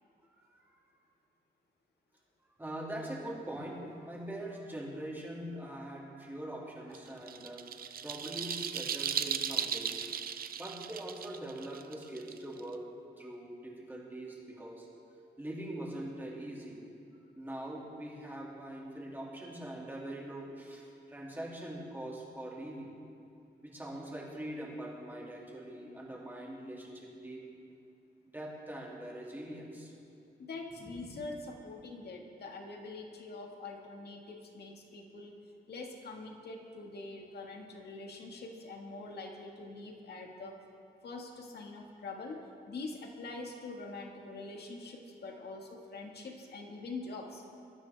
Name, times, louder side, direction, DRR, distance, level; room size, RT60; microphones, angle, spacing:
voice 1, 2.6-10.0 10.6-12.8 13.2-14.9 15.4-16.8 17.4-22.9 23.6-27.4 28.3-29.9 31.0-31.1, right 1 dB, 10° right, -3 dB, 2.3 m, -42 dB
sound 1, 6.9-12.7, right 8 dB, 55° right, 0.5 m, -36 dB
voice 2, 30.4-35.4 35.7-40.6 41.0-47.4, left 3 dB, 65° left, 1 dB, 1.8 m, -44 dB
22.0 x 13.0 x 3.4 m, 2.5 s
wide cardioid pair, 180°, 18 cm